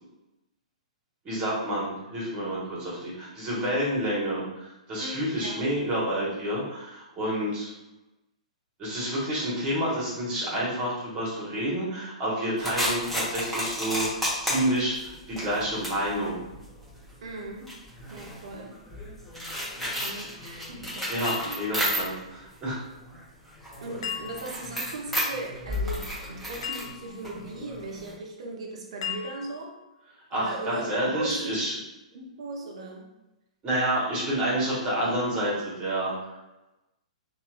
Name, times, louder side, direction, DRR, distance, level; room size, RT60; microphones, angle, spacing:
voice 1, 1.2-7.7 8.8-16.4 21.1-22.8 30.3-31.7 33.6-36.1, right 1 dB, 25° right, -6 dB, 1.1 m, -29 dB
voice 2, 5.0-5.7 17.2-17.8 18.1-18.8 19.8-21.1 21.5-21.7 23.8-29.8 30.3-31.7 32.1-33.1, right 2 dB, 60° right, 1 dB, 0.6 m, -38 dB
sound 1, 12.6-22.4 22.7-28.1, equal, 5° left, 0.9 m, -33 dB
sound 2, 21.2-22.2 24.0-24.8 26.6-27.3 29.0-29.8, left 9 dB, 55° left, 0.5 m, -37 dB
2.7 x 2.4 x 2.3 m, 0.98 s
figure-of-eight pair, 115°, 4 cm